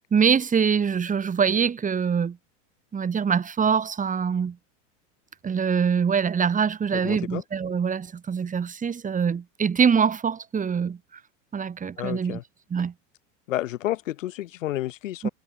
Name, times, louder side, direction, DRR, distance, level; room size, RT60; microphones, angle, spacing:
voice 1, 0.1-2.4 2.9-4.6 5.4-11.0 11.5-12.4 12.7-12.9 15.2-15.3, right 6 dB, 20° right, 6.7 m, -24 dB
voice 2, 6.9-7.4 12.0-12.4 13.5-15.3, left 14 dB, 90° left, 7.5 m, -30 dB
supercardioid pair, 130°, 37 cm